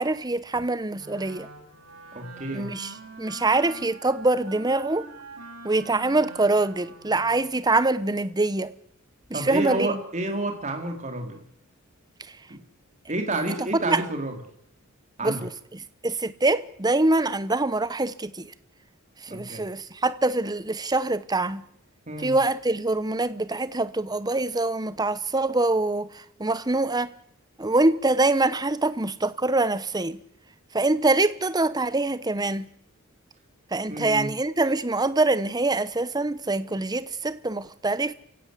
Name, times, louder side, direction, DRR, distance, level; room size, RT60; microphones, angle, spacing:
voice 1, 0.0-1.5 2.5-5.1 5.6-8.7 9.3-10.0 13.6-14.0 15.2-18.5 19.2-21.6 22.2-27.1 27.6-30.2 30.7-32.7 33.7-38.1, right 2 dB, 20° right, 1.0 m, -24 dB
Wind instrument woodwind instrument, 0.9-7.6, right 3 dB, 85° right, 6.7 m, -44 dB
voice 2, 2.1-2.7 9.3-11.4 12.5-12.6 13.1-14.4 15.2-15.4 19.3-19.6 22.1-22.3 33.9-34.3, right 2 dB, 35° right, 4.2 m, -30 dB
28.5 x 16.5 x 8.4 m
head